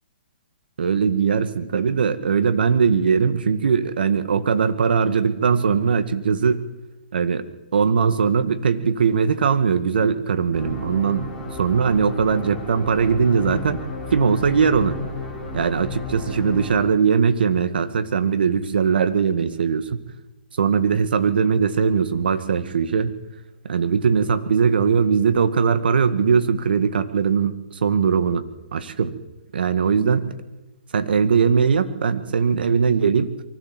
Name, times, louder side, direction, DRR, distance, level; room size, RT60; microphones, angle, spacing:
voice 1, 0.8-6.6 7.1-7.4 7.7-13.8 14.1-15.0 15.5-20.0 20.5-23.1 23.6-28.4 28.7-29.1 29.5-30.3 30.9-33.3, right 6 dB, 70° right, 10 dB, 1.8 m, -20 dB
sound 1, 10.5-16.8, left 4 dB, 5° left, 6.3 m, -33 dB
24.0 x 15.5 x 7.7 m, 1.1 s
hypercardioid pair, 140°, 5 cm